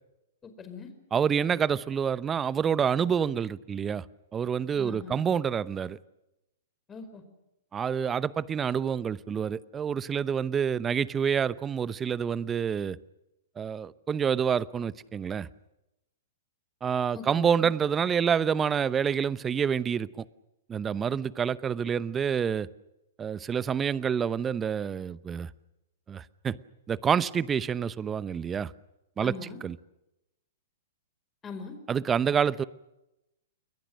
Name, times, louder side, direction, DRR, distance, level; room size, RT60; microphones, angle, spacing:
voice 1, 0.4-0.9 4.7-5.2 6.9-7.2 17.1-17.4 29.2-29.6 31.4-31.7, left 5 dB, 20° left, 4.8 m, -41 dB
voice 2, 1.1-4.0 4.3-6.0 7.7-13.0 13.6-15.5 16.8-20.2 20.7-22.7 23.2-25.5 26.1-26.6 26.9-28.7 29.2-29.3 29.6-29.8 31.9-32.6, right 7 dB, 20° right, 0.8 m, -27 dB
29.0 x 22.5 x 6.5 m
hypercardioid pair, 115°, 0 cm